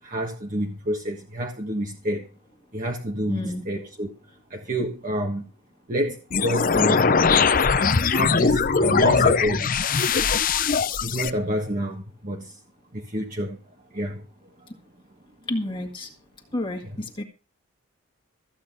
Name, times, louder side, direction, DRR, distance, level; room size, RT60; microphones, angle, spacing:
voice 1, 0.0-2.3 2.7-4.1 4.5-5.5 5.9-7.7 8.1-9.8 10.5-10.6 11.0-12.6 12.9-13.6 13.9-14.2 16.8-17.0, equal, 40° right, 1.5 m, -28 dB
voice 2, 3.3-3.6 15.5-16.1 16.5-17.2, left 1 dB, 25° left, 1.9 m, -30 dB
sound 1, 6.3-11.3, left 5 dB, 40° left, 0.7 m, -20 dB
14.5 x 8.6 x 5.5 m
head